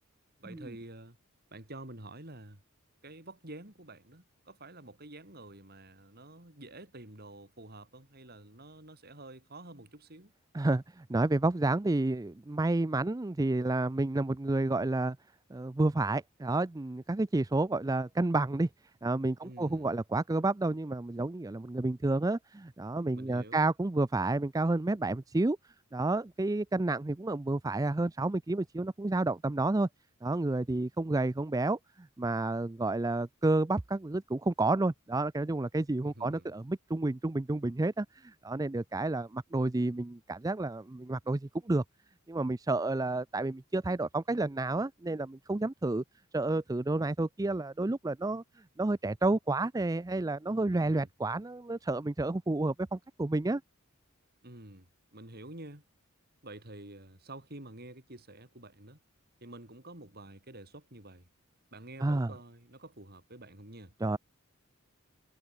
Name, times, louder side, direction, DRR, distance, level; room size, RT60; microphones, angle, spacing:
voice 1, 0.4-1.2 1.5-2.6 3.0-10.3 19.4-19.9 23.1-23.7 36.0-36.5 50.7-51.1 54.4-55.8 56.4-59.0 59.4-61.3 61.7-63.9, right 1 dB, 45° right, 4.6 m, -49 dB
voice 2, 10.5-15.2 15.5-18.7 19.0-25.6 25.9-29.9 30.2-41.8 42.3-46.0 46.3-48.4 48.8-53.6 62.0-62.3 64.0-64.2, right 2 dB, 15° right, 0.4 m, -30 dB
head